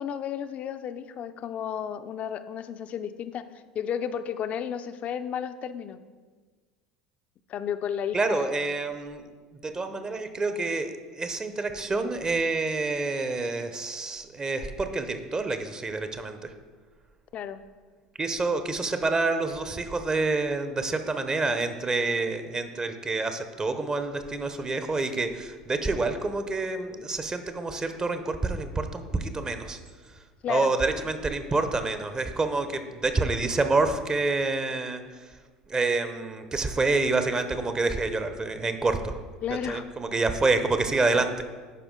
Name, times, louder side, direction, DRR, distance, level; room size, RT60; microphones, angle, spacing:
voice 1, 0.0-3.4 3.7-6.0 7.5-8.6 17.3-17.6 30.4-30.7 39.4-39.9, left 8 dB, 45° left, 11 dB, 0.5 m, -32 dB
voice 2, 8.1-9.3 9.6-16.5 18.2-29.8 30.5-35.4 35.7-39.2 39.7-41.4, right 3 dB, 25° right, 9 dB, 0.7 m, -27 dB
11.0 x 4.9 x 3.7 m, 1.5 s
figure-of-eight pair, 70°, 3 cm